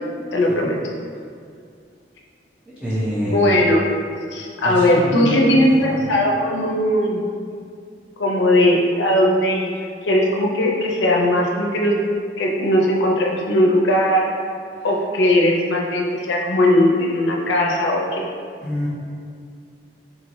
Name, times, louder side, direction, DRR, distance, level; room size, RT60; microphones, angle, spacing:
voice 1, 0.3-0.8 3.2-3.8 4.3-7.2 8.2-9.7 10.0-12.0 12.4-14.3 14.8-18.3, left 1 dB, 80° left, -1 dB, 0.5 m, -18 dB
voice 2, 2.7-3.5 4.6-5.7 18.6-18.9, equal, 5° right, -10 dB, 0.5 m, -25 dB
3.9 x 3.1 x 2.5 m, 2.3 s
head